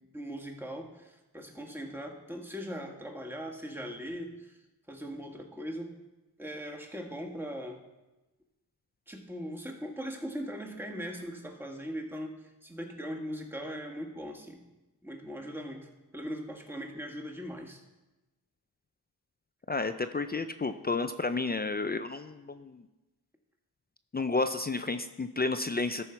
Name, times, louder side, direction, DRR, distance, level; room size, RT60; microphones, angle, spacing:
voice 1, 0.1-4.6 4.9-6.0 6.4-7.8 9.1-14.6 15.0-15.9 16.1-17.8, equal, 5° right, 1 dB, 1.6 m, -40 dB
voice 2, 19.7-22.8 24.1-26.0, left 3 dB, 25° left, 9 dB, 0.5 m, -31 dB
13.5 x 5.6 x 4.5 m, 1.1 s
cardioid pair, 55°, 40 cm